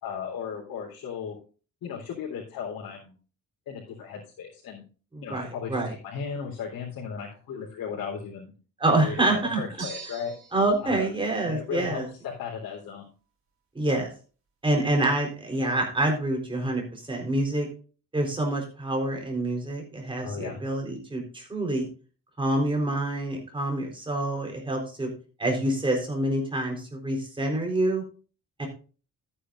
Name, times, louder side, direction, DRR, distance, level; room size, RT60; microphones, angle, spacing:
voice 1, 0.0-1.4 1.8-3.1 3.7-4.8 5.2-8.5 9.0-10.3 10.8-11.1 11.5-13.1 20.2-20.6, left 6 dB, 80° left, -5 dB, 3.7 m, -36 dB
voice 2, 5.1-5.9 8.8-9.6 10.5-12.1 13.7-14.1 14.6-17.7 18.1-21.8 22.4-25.1 25.4-28.0 28.6-28.7, right 2 dB, 15° right, 1 dB, 4.1 m, -27 dB
sound 1, 9.8-10.7, right 5 dB, 40° right, 4.7 m, -41 dB
13.5 x 9.8 x 2.6 m, 0.36 s
cardioid pair, 140°, 35 cm